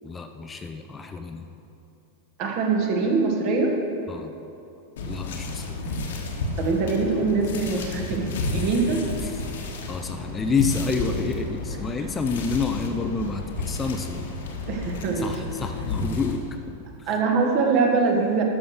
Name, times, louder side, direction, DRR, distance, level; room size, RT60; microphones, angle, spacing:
voice 1, 0.0-1.5 4.1-4.3 5.1-5.8 9.2-9.4 9.9-14.3 15.1-16.5 17.0-17.1, left 4 dB, 15° left, 6 dB, 0.5 m, -29 dB
voice 2, 2.4-3.8 6.6-9.0 14.7-15.3 17.1-18.4, right 4 dB, 45° right, 1 dB, 1.5 m, -23 dB
sound 1, 5.0-16.4, left 2 dB, 60° left, 1.3 m, -31 dB
12.0 x 6.3 x 4.7 m, 2.8 s
figure-of-eight pair, 90°, 0 cm